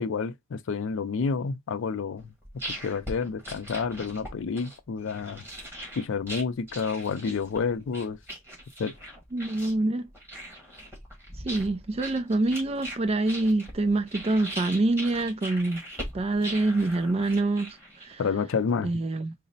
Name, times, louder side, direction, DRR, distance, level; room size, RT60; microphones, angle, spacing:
voice 1, 0.0-2.3 2.8-5.4 6.0-8.2 8.8-8.9 18.2-18.9, left 5 dB, 60° left, 0.4 m, -29 dB
sound 1, 2.2-18.3, right 1 dB, 10° right, 1.3 m, -41 dB
voice 2, 9.3-10.0 11.4-15.8 16.1-18.2 18.8-19.3, right 2 dB, 25° right, 0.3 m, -26 dB
4.0 x 2.1 x 3.9 m
head